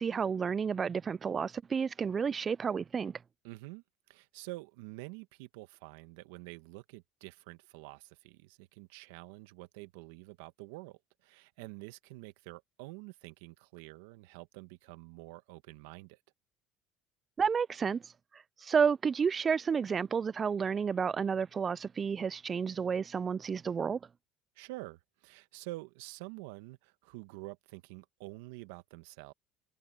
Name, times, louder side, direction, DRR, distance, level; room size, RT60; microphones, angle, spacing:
voice 1, 0.0-3.1 17.4-24.0, right 6 dB, 35° right, 0.3 m, -31 dB
voice 2, 3.4-16.2 24.5-29.3, right 21 dB, 80° right, 1.4 m, -48 dB
supercardioid pair, 80°, 0 cm